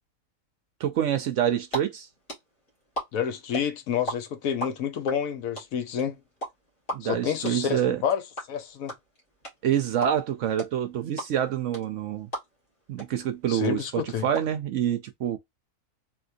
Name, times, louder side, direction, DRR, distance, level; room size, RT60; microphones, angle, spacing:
voice 1, 0.8-2.1 6.9-8.0 9.6-12.3 12.9-15.4, right 10 dB, 70° right, 0.8 m, -27 dB
sound 1, 1.4-1.8 2.0-4.1 4.4-12.7 13.0-13.1 13.3-14.4, right 1 dB, 40° left, 1.9 m, -34 dB
voice 2, 3.1-6.2 7.0-8.9 13.5-14.3, left 8 dB, 70° left, 1.1 m, -29 dB
3.6 x 2.7 x 2.6 m
omnidirectional pair, 1.6 m